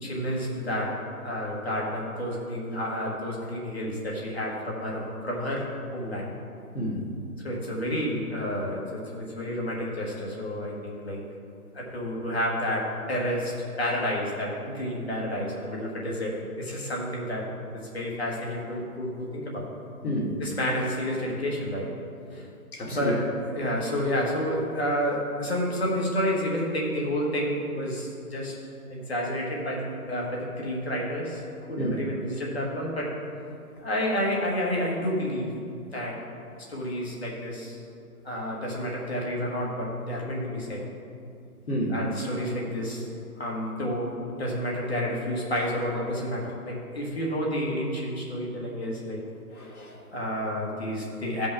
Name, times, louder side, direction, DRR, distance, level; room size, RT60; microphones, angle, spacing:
voice 1, 0.0-6.3 7.4-11.2 11.7-17.5 17.7-19.7 20.4-21.9 22.3-22.5 22.8-28.6 28.9-31.4 31.7-33.2 33.8-35.5 35.9-36.2 36.7-37.8 38.2-40.8 41.9-43.1 43.4-49.2 50.1-51.5, equal, 40° left, -3 dB, 1.5 m, -30 dB
voice 2, 6.7-7.0 20.0-20.4 22.7-23.2 31.8-32.0 41.7-42.0 49.5-50.0, equal, 70° left, -2 dB, 2.0 m, -30 dB
14.5 x 5.3 x 3.5 m, 2.6 s
hypercardioid pair, 175°, 46 cm